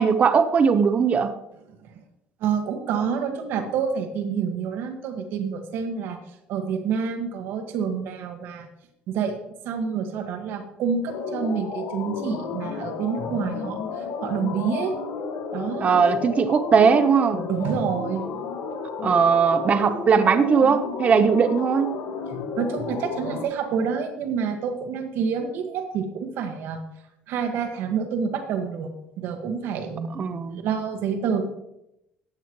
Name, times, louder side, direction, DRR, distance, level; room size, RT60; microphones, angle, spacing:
voice 1, 0.0-1.3 15.8-17.4 19.0-22.0 30.1-30.6, right 6 dB, 35° right, 11 dB, 0.7 m, -19 dB
voice 2, 2.4-6.2 6.5-8.7 9.1-9.3 9.6-13.8 14.2-14.9 15.5-15.9 17.5-18.3 22.6-26.8 27.3-30.2 30.6-31.4, right 6 dB, 70° right, 5 dB, 1.7 m, -28 dB
sound 1, 11.1-23.5, left 5 dB, 75° left, 1.7 m, -32 dB
14.5 x 9.0 x 3.1 m, 0.83 s
cardioid pair, 105°, 4 cm